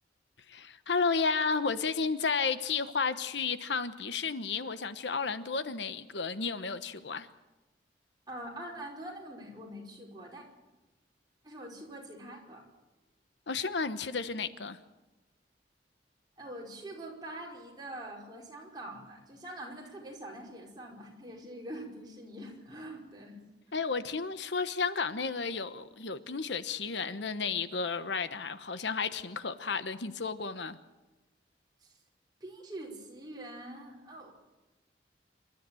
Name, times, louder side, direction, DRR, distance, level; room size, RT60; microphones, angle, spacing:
voice 1, 0.5-7.3 13.5-14.8 23.7-30.8, left 5 dB, 80° left, 1.1 m, -32 dB
voice 2, 8.3-10.4 11.4-12.7 16.4-23.4 23.7-23.8 31.8-32.0 32.4-34.4, right 1 dB, 25° right, 4.9 m, -44 dB
27.0 x 12.5 x 9.1 m
head